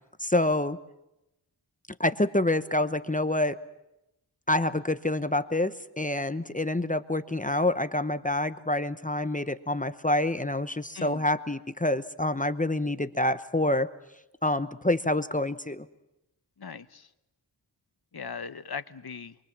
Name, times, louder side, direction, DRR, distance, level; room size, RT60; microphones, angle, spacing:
voice 1, 0.2-0.8 2.0-3.6 4.5-13.9 14.4-15.9, left 1 dB, 20° left, 11 dB, 0.9 m, -27 dB
voice 2, 10.9-11.3 16.6-17.1 18.1-19.4, left 5 dB, 55° left, 12 dB, 1.1 m, -39 dB
26.5 x 24.0 x 7.4 m, 0.90 s
wide cardioid pair, 70°, 45 cm